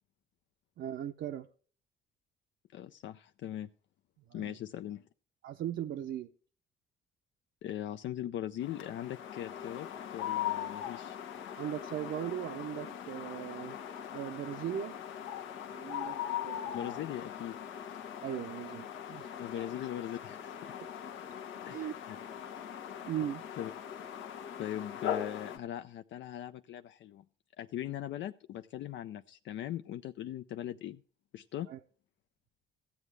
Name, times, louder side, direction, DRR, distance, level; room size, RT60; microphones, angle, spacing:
voice 1, 0.8-1.5 4.3-4.5 5.4-6.3 11.6-13.8 14.1-14.9 15.7-16.2 16.4-17.0 18.2-19.3 19.5-19.6 21.7-21.9 23.1-23.4 31.7-31.8, right 10 dB, 70° right, 4 dB, 0.6 m, -38 dB
voice 2, 2.7-3.7 4.3-5.0 7.6-11.2 16.7-17.6 19.4-20.7 21.7-22.2 22.9-23.1 23.6-23.7 24.6-27.2 27.6-31.0 31.3-31.7, left 11 dB, 70° left, 9 dB, 0.5 m, -40 dB
sound 1, 8.6-25.6, left 10 dB, 85° left, 1.1 m, -40 dB
14.5 x 8.2 x 3.3 m, 0.43 s
cardioid pair, 90°, 20 cm